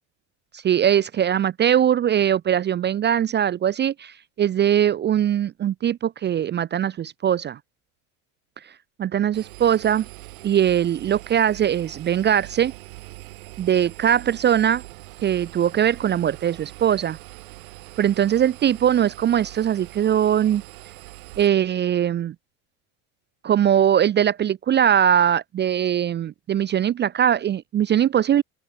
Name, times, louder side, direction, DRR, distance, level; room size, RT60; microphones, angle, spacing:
voice 1, 0.6-7.6 9.0-10.0 10.4-12.7 13.6-14.8 15.2-17.2 18.0-20.6 21.4-22.3 23.4-28.4, right 10 dB, 25° right, 0.5 m, -21 dB
Engine, 9.3-21.5, right 22 dB, 85° right, 2.9 m, -42 dB
open air
supercardioid pair, 110°, 40 cm